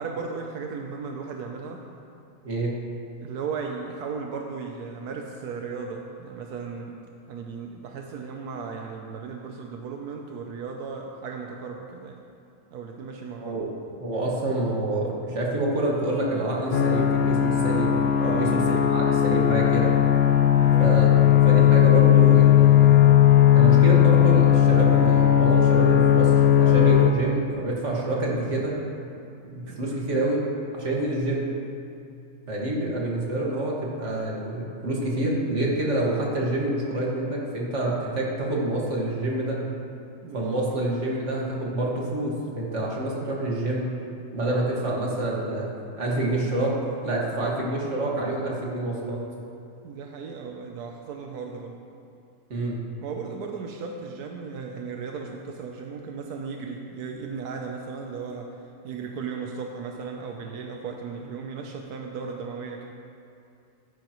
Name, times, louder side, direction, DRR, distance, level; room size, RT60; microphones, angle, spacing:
voice 1, 0.0-1.8 3.2-12.2 12.7-13.6 18.2-18.8 20.5-20.9 29.7-30.0 40.2-40.7 49.8-51.8 53.0-58.6 58.8-62.8, right 5 dB, 85° right, 2 dB, 1.3 m, -36 dB
voice 2, 14.0-19.9 20.8-21.1 21.4-23.1 23.5-28.7 29.5-30.4 30.7-31.5 32.5-39.6 40.3-43.9 44.3-45.7 46.0-46.7 47.0-49.2 52.5-52.8, right 1 dB, 50° right, -3 dB, 2.2 m, -27 dB
sound 1, 16.7-27.1, left 11 dB, 75° left, 0.5 m, -17 dB
15.5 x 9.5 x 3.1 m, 2.7 s
omnidirectional pair, 1.6 m